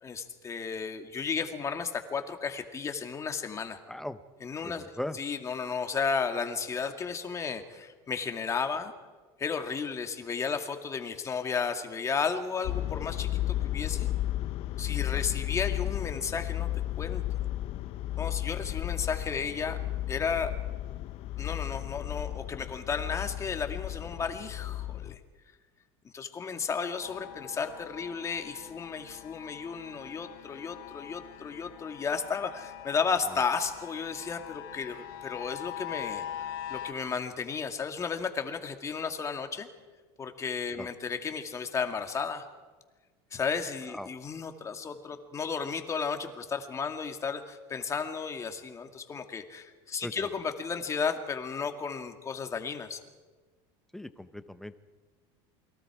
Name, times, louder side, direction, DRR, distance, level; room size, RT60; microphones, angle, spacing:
voice 1, 0.0-3.8 4.4-4.9 5.2-8.9 9.4-14.1 14.8-16.7 17.0-17.2 18.2-19.8 20.1-20.5 21.4-25.2 26.0-39.7 40.2-42.5 43.3-53.0, left 5 dB, 25° left, 6 dB, 2.0 m, -33 dB
voice 2, 3.9-4.2 4.6-5.2 15.1-15.2 33.3-33.4 40.8-40.9 43.9-44.1 50.0-50.3 53.9-54.8, left 1 dB, 5° left, 11 dB, 1.0 m, -39 dB
sound 1, 12.6-25.2, left 14 dB, 55° left, 1.1 m, -33 dB
sound 2, 27.0-36.9, left 11 dB, 80° left, 1.4 m, -43 dB
28.5 x 22.0 x 4.9 m, 1.3 s
supercardioid pair, 130°, 12 cm